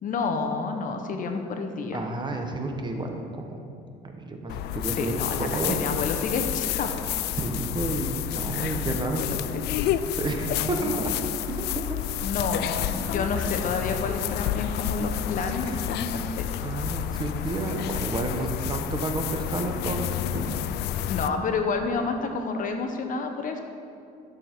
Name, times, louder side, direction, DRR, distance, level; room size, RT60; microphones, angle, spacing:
voice 1, 0.0-2.0 4.9-7.1 8.6-9.6 10.4-11.0 12.2-16.4 21.1-23.6, left 4 dB, 50° left, 5 dB, 1.0 m, -30 dB
voice 2, 1.9-3.6 4.0-5.9 7.3-9.2 10.1-11.1 11.5-12.0 15.6-15.9 16.6-20.6, right 2 dB, 25° right, 3 dB, 1.1 m, -31 dB
sound 1, 4.5-21.3, left 11 dB, 75° left, 0.4 m, -30 dB
12.0 x 6.6 x 4.5 m, 2.4 s
cardioid pair, 110°, 17 cm